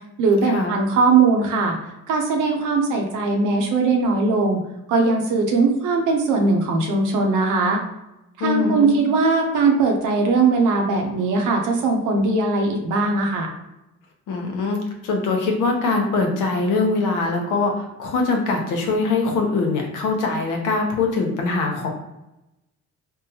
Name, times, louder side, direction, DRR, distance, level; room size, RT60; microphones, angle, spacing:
voice 1, 0.2-1.8 2.1-4.6 4.9-7.8 8.4-13.5, right 3 dB, 85° right, 2 dB, 0.7 m, -20 dB
voice 2, 8.4-9.0 14.3-14.8 15.0-21.9, left 3 dB, 90° left, 2 dB, 0.8 m, -22 dB
3.6 x 2.1 x 2.8 m, 0.92 s
cardioid pair, 90°, 30 cm